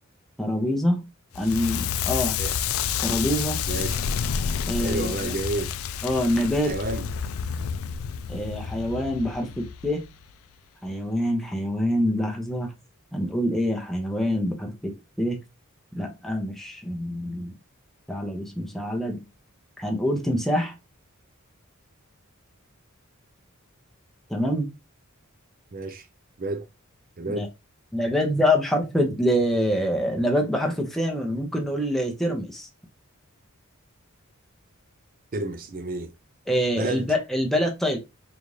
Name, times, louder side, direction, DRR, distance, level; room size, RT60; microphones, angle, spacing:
voice 1, 0.4-1.0 1.3-2.4 3.0-3.6 4.7-5.3 6.0-6.8 8.3-10.0 10.8-12.7 13.1-15.4 15.9-17.5 18.1-19.2 19.8-20.7 24.3-24.7 27.3-27.5 27.9-32.7 36.5-38.0, equal, ahead, 0.7 m, -25 dB
Crackle, 1.3-10.3, left 7 dB, 75° left, 0.3 m, -29 dB
voice 2, 3.7-4.0 4.7-5.7 6.7-7.1 25.7-26.1 26.4-26.7 27.2-27.5 35.3-36.1 36.8-37.1, right 2 dB, 40° right, 0.5 m, -30 dB
4.1 x 2.5 x 3.1 m
head